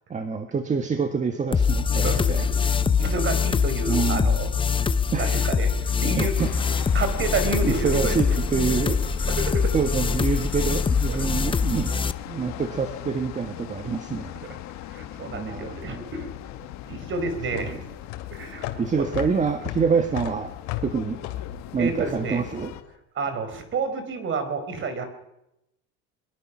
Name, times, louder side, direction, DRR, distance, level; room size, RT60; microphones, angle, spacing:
voice 1, 0.1-2.5 3.9-4.4 5.1-5.4 6.2-6.5 7.6-9.1 9.7-11.9 12.4-14.4 15.3-16.1 17.5-17.8 18.8-20.5 20.8-21.2 21.7-22.7, right 5 dB, 25° right, 7 dB, 1.5 m, -26 dB
sound 1, 1.5-12.1, left 6 dB, 15° left, 0.7 m, -23 dB
voice 2, 1.9-4.5 5.2-5.7 6.0-6.3 6.9-8.4 9.2-9.7 11.1-11.2 12.3-12.5 14.5-14.6 14.9-16.3 16.9-17.8 18.3-18.7 19.0-19.1 21.8-22.4 23.2-25.1, right 3 dB, 40° right, 9 dB, 4.5 m, -30 dB
sound 2, 6.4-22.8, left 13 dB, 60° left, 1.8 m, -39 dB
sound 3, 16.2-22.7, left 13 dB, 85° left, 2.8 m, -36 dB
23.0 x 22.5 x 6.2 m, 0.86 s
cardioid pair, 135°, 31 cm